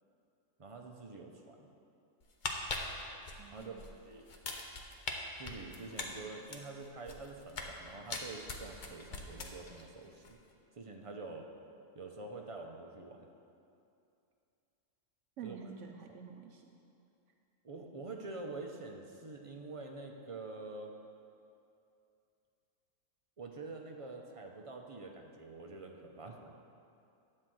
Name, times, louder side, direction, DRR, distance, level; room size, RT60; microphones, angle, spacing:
voice 1, 0.6-1.7 3.5-4.3 5.4-10.4 10.7-11.5 11.9-13.3 15.4-15.7 17.6-20.9 23.4-26.5, right 3 dB, 40° right, 2 dB, 0.5 m, -46 dB
sound 1, 2.2-3.9 4.3-5.1 5.4-7.8 8.1-9.8 10.1-10.3, left 3 dB, 45° left, 0.8 m, -41 dB
voice 2, 3.4-3.9 15.4-16.8 17.7-17.8, right 7 dB, 70° right, 3 dB, 0.9 m, -48 dB
10.0 x 4.3 x 7.5 m, 2.6 s
omnidirectional pair, 1.4 m